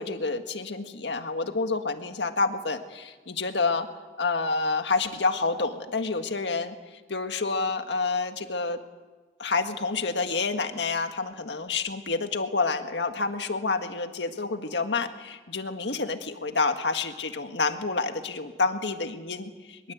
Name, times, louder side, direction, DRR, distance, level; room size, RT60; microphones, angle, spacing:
voice 1, 0.0-3.9 4.2-6.8 7.1-8.8 9.4-19.9, left 4 dB, 75° left, 7 dB, 1.7 m, -28 dB
23.0 x 23.0 x 8.2 m, 1.3 s
head